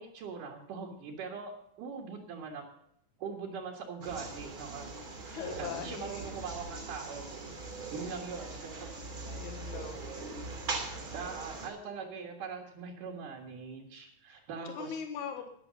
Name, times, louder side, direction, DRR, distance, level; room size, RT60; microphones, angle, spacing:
voice 1, 0.0-1.5 1.8-2.7 3.2-7.3 7.9-8.9 11.1-15.0, right 5 dB, 90° right, -1 dB, 3.3 m, -42 dB
sound 1, 4.0-11.7, right 3 dB, 30° right, 3.3 m, -41 dB
voice 2, 5.3-6.3 9.2-10.0 14.3-14.4 14.6-15.5, left 8 dB, 75° left, 4 dB, 2.7 m, -41 dB
Wind instrument woodwind instrument, 6.7-10.6 10.9-11.9 12.2-12.4, equal, 10° left, 4.5 m, -58 dB
13.0 x 10.5 x 5.2 m, 0.73 s
omnidirectional pair, 3.6 m